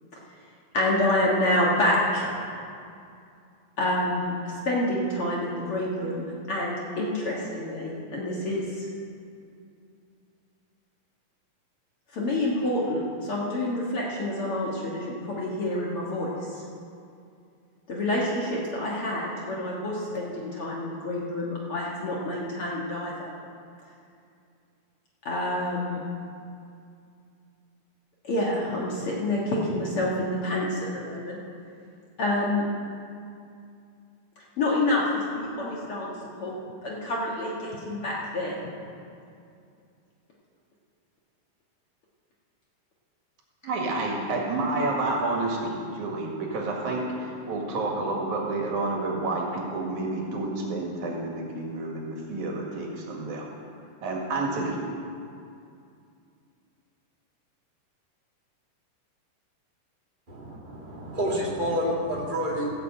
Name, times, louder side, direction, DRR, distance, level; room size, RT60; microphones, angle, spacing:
voice 1, 0.7-2.3 3.8-8.9 12.1-16.6 17.9-23.3 25.3-26.0 28.2-31.4 32.2-32.6 34.6-36.1 36.4-38.5, left 1 dB, 50° left, -4 dB, 2.2 m, -28 dB
voice 2, 43.6-53.5 54.0-54.8, right 2 dB, 65° right, -1 dB, 3.0 m, -29 dB
voice 3, 60.3-62.7, equal, 20° right, -4 dB, 1.8 m, -29 dB
16.0 x 7.0 x 7.8 m, 2.4 s
omnidirectional pair, 3.8 m